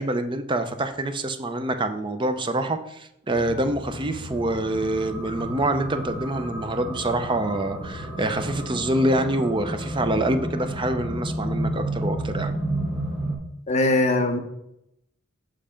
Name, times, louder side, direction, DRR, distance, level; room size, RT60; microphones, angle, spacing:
voice 1, 0.0-12.5, right 1 dB, 25° right, 8 dB, 0.5 m, -26 dB
sound 1, 3.3-13.4, right 1 dB, 5° right, 1.4 m, -31 dB
voice 2, 13.7-14.4, left 2 dB, 35° left, 5 dB, 0.7 m, -21 dB
5.7 x 5.4 x 5.0 m, 0.79 s
head